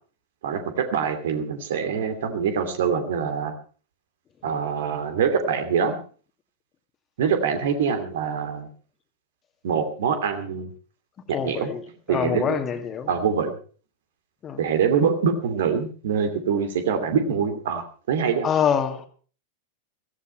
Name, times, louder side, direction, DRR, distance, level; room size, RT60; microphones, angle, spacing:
voice 1, 0.4-3.5 4.4-6.0 7.2-8.7 9.6-10.7 11.4-11.7 12.1-12.6 13.1-13.6 14.6-18.5, right 6 dB, 60° right, 2.8 m, -24 dB
voice 2, 11.3-11.8 12.1-13.1 14.4-14.7 18.4-19.1, left 8 dB, 25° left, 2.1 m, -25 dB
16.0 x 15.0 x 4.4 m
figure-of-eight pair, 90°, 0 cm